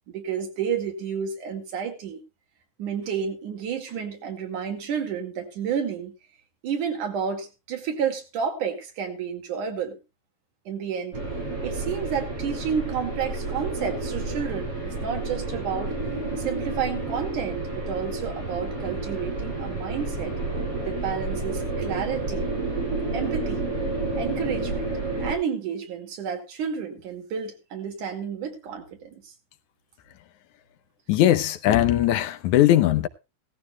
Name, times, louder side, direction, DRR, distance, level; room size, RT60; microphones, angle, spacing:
voice 1, 0.1-2.2 2.8-6.1 6.6-10.0 10.7-11.1 11.6-16.0 16.4-20.3 20.9-22.5 23.1-23.7 24.2-24.9 25.2-29.2, right 7 dB, 90° right, 3.7 m, -30 dB
sound 1, 11.1-25.4, right 3 dB, 45° right, 7.6 m, -30 dB
voice 2, 31.1-33.1, left 13 dB, 80° left, 2.3 m, -19 dB
17.5 x 14.0 x 2.3 m
omnidirectional pair, 3.4 m